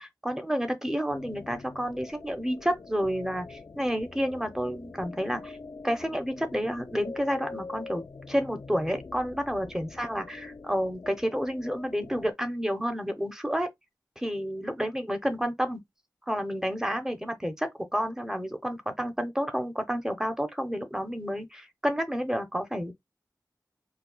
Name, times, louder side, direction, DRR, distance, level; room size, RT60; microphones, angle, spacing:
voice 1, 0.0-5.6 5.8-13.7 14.2-15.8 16.3-22.9, equal, 5° right, 0.8 m, -30 dB
sound 1, 1.1-12.3, left 4 dB, 50° left, 0.4 m, -44 dB
4.1 x 2.3 x 2.3 m
wide cardioid pair, 70°, 7 cm